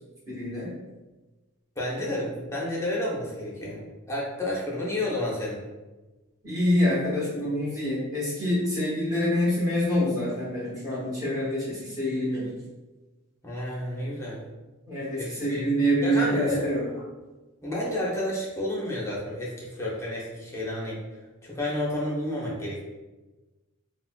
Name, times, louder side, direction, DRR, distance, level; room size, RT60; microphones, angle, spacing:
voice 1, 0.3-0.7 6.4-12.5 14.9-16.8, equal, 15° right, -9 dB, 1.2 m, -26 dB
voice 2, 1.8-3.8 4.1-5.6 13.4-14.4 15.2-15.7 16.0-17.0 17.6-21.0 21.4-22.8, left 1 dB, 15° left, -5 dB, 0.7 m, -30 dB
3.5 x 2.2 x 2.3 m, 1.2 s
head